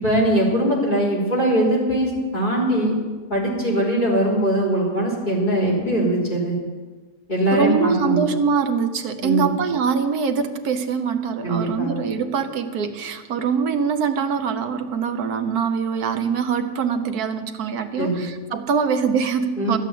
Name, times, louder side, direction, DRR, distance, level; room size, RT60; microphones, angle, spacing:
voice 1, 0.0-3.0 3.3-6.6 7.3-8.2 9.2-9.5 11.4-11.9 18.0-18.2 19.6-19.8, right 1 dB, 30° left, -5 dB, 3.7 m, -21 dB
voice 2, 7.5-19.8, right 6 dB, 75° right, 8 dB, 1.4 m, -23 dB
12.5 x 8.2 x 8.5 m, 1.4 s
omnidirectional pair, 1.7 m